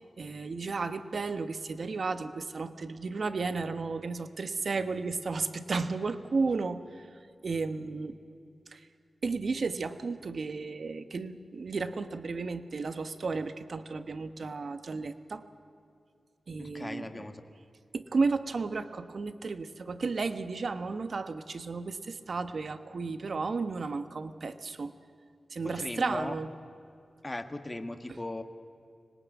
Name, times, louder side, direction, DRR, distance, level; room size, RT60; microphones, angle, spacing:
voice 1, 0.2-8.2 8.7-8.9 9.2-15.4 16.5-17.3 17.9-24.9 25.5-26.5, right 4 dB, 65° right, 11 dB, 1.2 m, -33 dB
voice 2, 16.6-17.4 25.6-26.4 27.2-28.4, left 2 dB, 25° left, 7 dB, 1.8 m, -37 dB
25.0 x 19.0 x 9.4 m, 2.5 s
cardioid pair, 60°, 0 cm